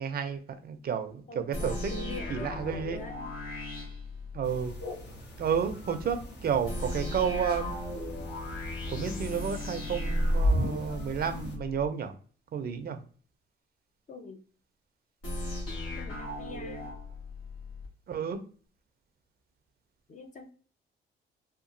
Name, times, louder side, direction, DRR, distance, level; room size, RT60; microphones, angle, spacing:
voice 1, 0.0-3.0 4.3-4.8 5.4-7.7 8.9-12.1 12.5-13.0 18.1-18.4, right 7 dB, 50° right, 8 dB, 0.5 m, -31 dB
voice 2, 1.3-3.3 14.1-14.4 15.9-16.9 20.1-20.5, left 3 dB, 40° left, 5 dB, 0.6 m, -44 dB
sound 1, 1.5-4.8 6.7-11.9 15.2-17.9, left 1 dB, 85° left, 1.4 m, -34 dB
sound 2, 4.4-11.6, equal, 60° left, 0.9 m, -43 dB
2.8 x 2.3 x 2.6 m, 0.42 s
cardioid pair, 90°, 20 cm